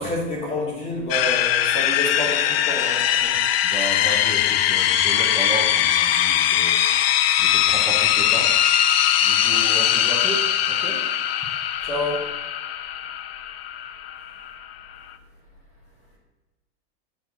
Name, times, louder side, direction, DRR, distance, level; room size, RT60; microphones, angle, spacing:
voice 1, 0.0-3.4 11.8-12.2, left 1 dB, 20° left, -2 dB, 1.7 m, -28 dB
sound 1, 1.1-15.1, left 11 dB, 55° left, 0.5 m, -21 dB
voice 2, 3.6-8.4 9.2-11.0, right 1 dB, ahead, -7 dB, 0.6 m, -33 dB
6.9 x 4.6 x 6.3 m, 1.1 s
supercardioid pair, 180°, 36 cm